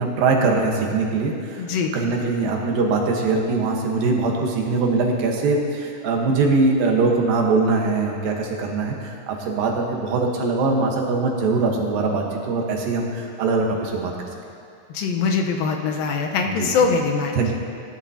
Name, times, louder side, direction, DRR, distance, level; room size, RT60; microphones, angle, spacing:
voice 1, 0.0-1.6 1.9-14.1 16.4-16.7 17.3-17.5, right 3 dB, 80° right, 0 dB, 3.0 m, -22 dB
voice 2, 1.6-1.9 2.2-2.3 14.9-17.4, left 5 dB, 85° left, 2 dB, 2.7 m, -22 dB
19.5 x 11.0 x 2.8 m, 2.4 s
omnidirectional pair, 4.0 m